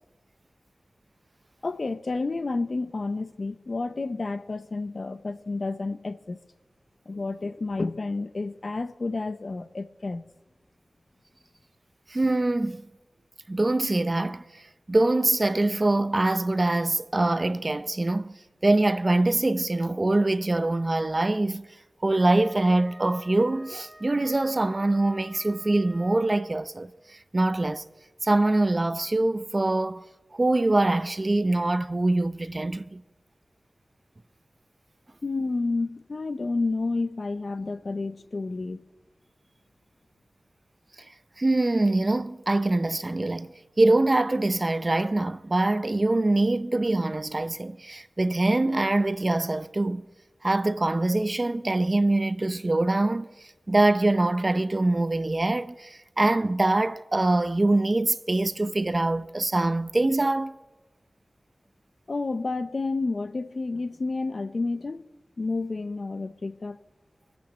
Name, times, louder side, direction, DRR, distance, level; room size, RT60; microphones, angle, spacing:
voice 1, 1.6-6.4 7.1-10.3 35.2-38.8 62.1-65.1 65.4-66.8, left 3 dB, 60° left, 0.7 m, -30 dB
voice 2, 12.1-12.8 13.5-14.6 14.9-18.3 18.6-21.7 22.0-27.8 28.2-30.0 30.3-33.0 41.4-50.0 50.4-60.5, right 2 dB, 35° right, 0.6 m, -24 dB
Wind instrument woodwind instrument, 22.0-26.6, equal, 5° left, 1.3 m, -50 dB
22.5 x 8.7 x 7.4 m
wide cardioid pair, 75°, 0 cm